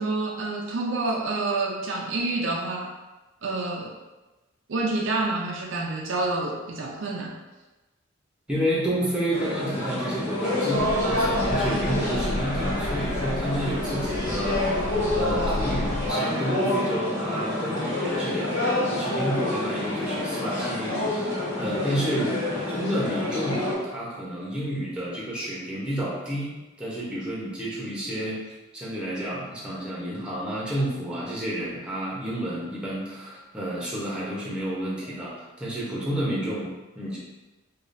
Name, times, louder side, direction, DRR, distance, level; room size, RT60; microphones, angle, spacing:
voice 1, 0.0-2.9 3.4-3.9 4.7-7.3 11.0-11.3, right 2 dB, 60° right, 0 dB, 0.4 m, -28 dB
voice 2, 8.5-37.2, right 1 dB, 5° right, -6 dB, 0.9 m, -30 dB
sound 1, 9.3-23.7, left 1 dB, 40° left, 1.5 m, -27 dB
sound 2, 10.8-16.1, left 2 dB, 65° left, 0.4 m, -32 dB
4.8 x 2.4 x 2.6 m, 1.1 s
head